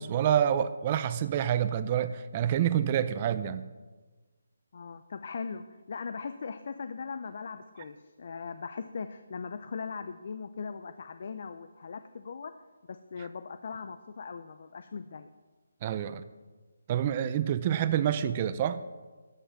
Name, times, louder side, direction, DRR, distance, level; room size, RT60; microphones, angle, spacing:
voice 1, 0.0-3.6 15.8-16.3 16.9-18.8, right 10 dB, 25° right, 13 dB, 0.5 m, -27 dB
voice 2, 4.7-12.5 12.9-15.3, left 5 dB, 50° left, 10 dB, 0.5 m, -39 dB
13.0 x 5.6 x 7.4 m, 1.3 s
hypercardioid pair, 165°, 0 cm